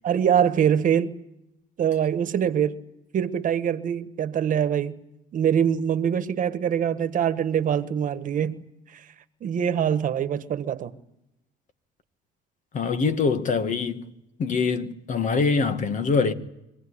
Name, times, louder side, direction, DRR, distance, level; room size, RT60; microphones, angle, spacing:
voice 1, 0.0-1.1 1.8-2.7 3.1-5.0 5.3-9.1 9.4-10.9, right 8 dB, 50° right, 1.5 m, -24 dB
voice 2, 12.7-14.1 14.4-16.3, left 4 dB, 50° left, 1.9 m, -24 dB
25.0 x 17.5 x 9.9 m
cardioid pair, 110°, 17 cm